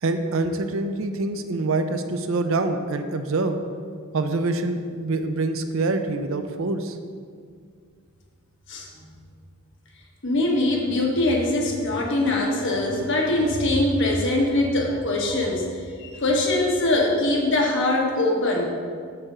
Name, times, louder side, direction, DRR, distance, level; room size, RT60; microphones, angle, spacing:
voice 1, 0.0-3.6 4.1-7.0, right 2 dB, 70° right, 8 dB, 0.6 m, -25 dB
voice 2, 10.2-15.6 16.0-18.7, left 2 dB, 60° left, 0 dB, 1.2 m, -22 dB
6.8 x 4.3 x 6.5 m, 2.1 s
head